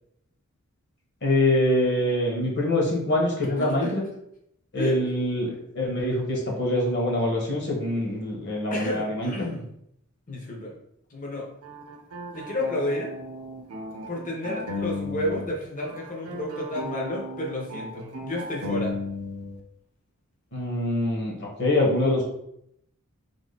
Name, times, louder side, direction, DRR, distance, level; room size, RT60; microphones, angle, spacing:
voice 1, 1.2-4.0 4.7-9.3 20.5-22.2, left 1 dB, 55° left, -2 dB, 1.4 m, -24 dB
voice 2, 3.6-4.0 4.8-5.0 8.7-9.7 10.3-10.7 11.1-11.5 12.3-13.1 14.1-19.0, left 1 dB, 35° left, -1 dB, 1.0 m, -31 dB
sound 1, 11.6-15.5 15.8-19.6, left 2 dB, 90° right, 0.7 m, -35 dB
3.8 x 2.9 x 4.1 m, 0.75 s
head